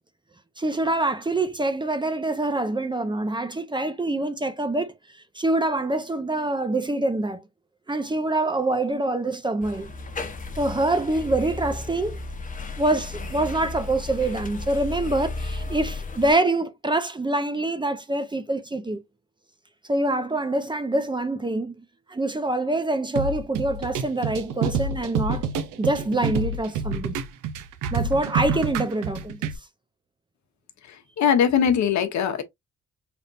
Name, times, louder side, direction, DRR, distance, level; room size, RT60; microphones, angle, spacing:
voice 1, 0.6-4.9 5.4-7.4 7.9-9.9 10.6-12.2 12.8-19.0 19.9-21.7 22.1-25.4 25.8-27.2 27.9-29.5, right 2 dB, 15° right, 0.7 m, -25 dB
sound 1, 9.6-16.3, left 3 dB, 25° left, 0.9 m, -34 dB
sound 2, 23.2-29.6, right 5 dB, 85° right, 0.7 m, -28 dB
voice 2, 30.9-32.4, left 8 dB, 65° left, 1.0 m, -21 dB
4.2 x 3.5 x 2.5 m
cardioid pair, 90°, 30 cm